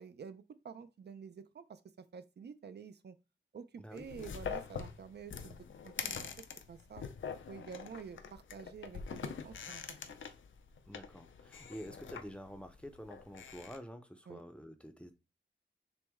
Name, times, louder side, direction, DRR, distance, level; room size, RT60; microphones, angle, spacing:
voice 1, 0.0-3.2 3.5-5.6 5.8-6.3 6.7-7.0 7.5-10.0 14.3-14.4, right 6 dB, 60° right, 0.4 m, -49 dB
sound 1, 4.0-13.8, left 6 dB, 85° left, 0.4 m, -44 dB
voice 2, 10.8-15.1, equal, 5° left, 0.5 m, -48 dB
6.0 x 2.1 x 3.5 m
wide cardioid pair, 105°, 19 cm